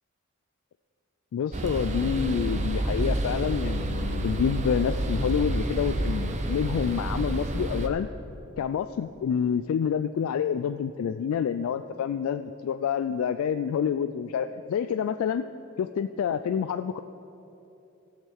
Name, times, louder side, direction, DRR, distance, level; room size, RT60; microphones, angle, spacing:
voice 1, 1.3-8.1 8.6-15.4 15.8-17.0, left 7 dB, 85° left, 10 dB, 0.3 m, -28 dB
sound 1, 1.5-7.9, right 1 dB, 35° right, 0.6 m, -29 dB
16.5 x 6.6 x 4.5 m, 2.9 s
head